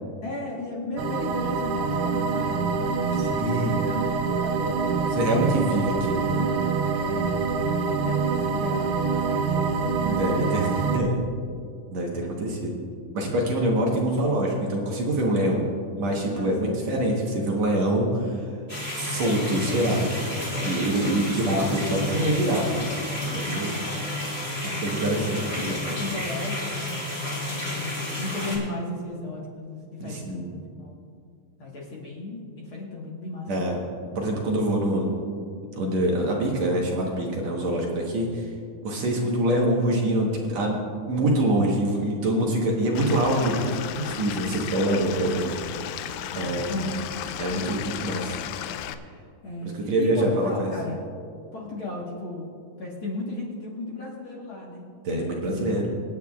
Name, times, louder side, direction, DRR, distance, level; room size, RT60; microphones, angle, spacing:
voice 1, 0.2-5.3 6.9-7.4 7.7-10.0 10.3-10.6 12.0-12.1 13.4-13.5 16.3-16.9 21.0-21.3 23.4-23.9 24.6-27.1 27.5-30.9 31.6-33.7 34.3-34.4 45.1-45.8 46.3-47.0 47.6-47.9 48.9-51.0 51.5-52.5 52.8-54.9 55.2-56.0, left 2 dB, 50° left, -4 dB, 1.8 m, -36 dB
sound 1, 1.0-11.0, right 5 dB, 90° right, 1.2 m, -25 dB
voice 2, 3.1-3.8 5.1-6.5 10.0-11.2 11.9-12.8 13.1-15.7 16.0-18.4 19.0-20.1 20.6-22.8 23.3-23.7 24.6-25.7 30.0-30.5 33.5-33.8 34.2-35.1 35.6-38.5 38.8-45.5 46.4-46.7 47.4-48.4 49.9-50.7 55.0-55.8, right 1 dB, 60° right, -1 dB, 2.2 m, -25 dB
sound 2, 18.7-28.6, left 1 dB, 15° left, 2.8 m, -31 dB
Stream / Liquid, 43.0-49.0, left 10 dB, 80° left, 1.8 m, -34 dB
26.0 x 8.9 x 2.4 m, 2.3 s
omnidirectional pair, 3.7 m